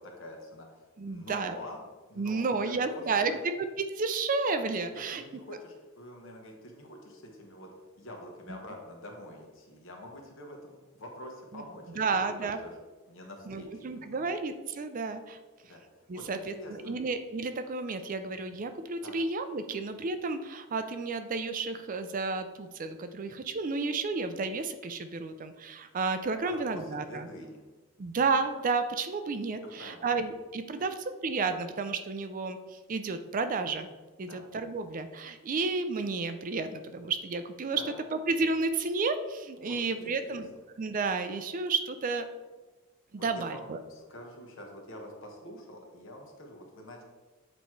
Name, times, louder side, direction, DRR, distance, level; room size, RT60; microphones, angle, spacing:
voice 1, 0.0-1.8 2.1-3.4 4.9-7.7 8.0-12.7 13.1-14.3 15.6-15.8 16.1-16.9 19.0-19.2 26.4-27.6 29.8-30.1 30.8-30.9 34.2-34.5 37.7-38.0 39.6-40.4 43.2-47.0, left 1 dB, 60° left, 2 dB, 1.2 m, -46 dB
voice 2, 1.0-1.6 2.2-3.3 3.9-5.2 11.5-11.6 12.0-12.6 13.5-15.4 16.1-27.3 28.0-33.9 34.2-37.8 38.1-40.5 40.8-42.3 43.1-43.8, right 4 dB, 40° right, 9 dB, 0.4 m, -32 dB
7.8 x 3.1 x 4.5 m, 1.2 s
head